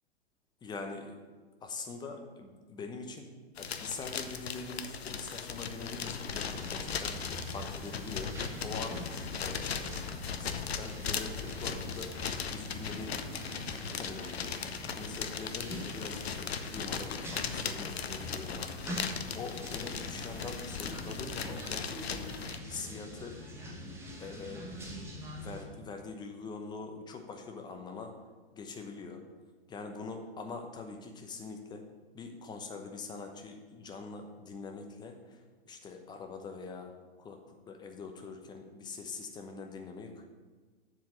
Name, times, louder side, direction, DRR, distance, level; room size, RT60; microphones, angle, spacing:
voice 1, 0.6-1.3 1.6-3.3 3.6-8.3 8.6-9.0 9.4-10.0 10.4-12.1 12.5-13.2 13.6-14.5 15.0-19.0 19.3-22.2 22.6-23.4 24.2-24.7 25.3-28.2 28.5-29.2 29.7-31.8 32.1-35.2 35.7-36.9 37.2-37.4 37.7-40.2, left 4 dB, 15° left, 4 dB, 0.8 m, -43 dB
sound 1, 3.6-22.6, left 6 dB, 70° left, 0.7 m, -38 dB
sound 2, 6.5-25.6, equal, 10° right, 1.2 m, -44 dB
7.2 x 5.0 x 7.0 m, 1.4 s
figure-of-eight pair, 115°, 32 cm